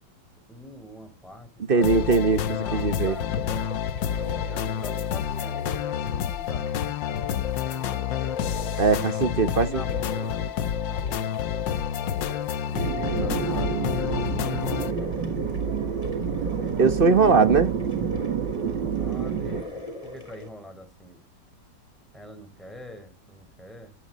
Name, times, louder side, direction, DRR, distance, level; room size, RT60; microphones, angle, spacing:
voice 1, 0.5-2.1 2.6-6.7 7.4-8.1 9.3-11.8 13.0-15.3 16.3-16.9 18.6-21.2 22.1-23.9, equal, ahead, 4.6 m, -45 dB
voice 2, 1.7-3.1 8.8-9.8 16.8-17.7, right 4 dB, 35° right, 1.1 m, -20 dB
sound 1, 1.8-14.9, left 9 dB, 70° left, 1.6 m, -29 dB
sound 2, 1.9-20.5, left 2 dB, 15° left, 5.1 m, -43 dB
sound 3, 12.7-19.6, right 6 dB, 65° right, 2.2 m, -28 dB
23.5 x 10.5 x 4.3 m
omnidirectional pair, 2.1 m